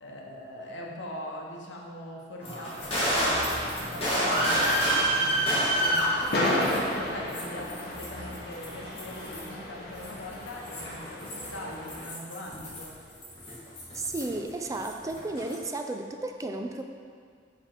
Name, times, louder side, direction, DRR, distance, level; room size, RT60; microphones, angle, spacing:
voice 1, 0.0-13.0, left 1 dB, 85° left, -1 dB, 0.9 m, -41 dB
sound 1, 2.4-6.9 7.3-9.5 10.0-14.5 14.7-15.6, right 1 dB, 35° left, 1.5 m, -29 dB
sound 2, 2.7-12.1, left 1 dB, 60° left, 1.0 m, -35 dB
voice 2, 13.9-16.8, right 2 dB, 20° right, 4 dB, 0.4 m, -33 dB
5.0 x 4.9 x 4.5 m, 2.1 s
head